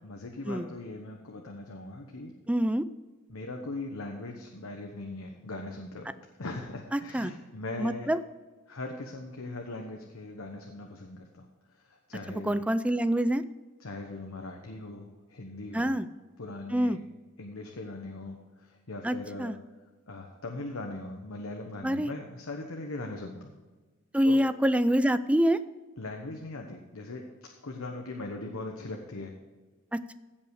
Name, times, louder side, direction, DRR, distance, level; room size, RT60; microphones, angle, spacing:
voice 1, 0.0-2.3 3.3-6.1 6.4-8.1 8.7-12.6 13.8-16.0 16.4-17.0 17.4-19.5 20.1-23.5 24.2-24.4 26.0-29.3, left 2 dB, 85° left, 2 dB, 1.1 m, -40 dB
voice 2, 2.5-2.9 6.9-7.3 7.8-8.2 12.3-13.4 15.7-16.1 16.7-17.0 19.0-19.6 21.8-22.1 24.1-25.6 29.9-30.1, equal, 5° right, 13 dB, 0.4 m, -26 dB
16.0 x 5.5 x 4.8 m, 1.3 s
head